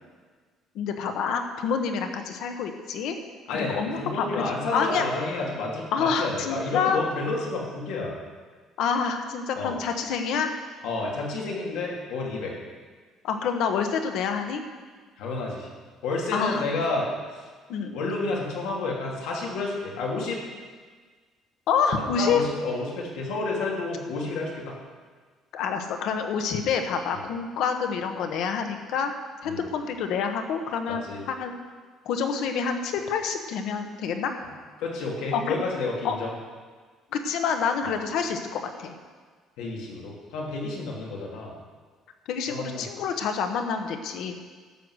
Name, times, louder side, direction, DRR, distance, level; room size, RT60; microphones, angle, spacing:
voice 1, 0.7-3.2 3.5-4.4 4.7-5.1 5.9-7.0 8.8-10.5 13.2-14.6 16.3-16.6 17.7-17.9 21.7-22.4 25.5-29.1 29.4-31.0 31.3-31.6 32.0-34.3 35.3-35.4 36.0-36.2 37.1-38.9 42.3-44.3, left 6 dB, 60° left, 6 dB, 1.2 m, -27 dB
voice 2, 3.5-8.2 9.5-9.7 10.8-12.5 15.2-15.7 16.0-17.4 17.9-20.4 22.0-24.7 29.4-29.6 30.9-31.2 34.8-36.3 37.8-37.9 39.6-41.5 42.5-42.8, left 3 dB, 90° left, -2 dB, 2.9 m, -30 dB
12.5 x 7.8 x 6.4 m, 1.5 s
cardioid pair, 180°, 0 cm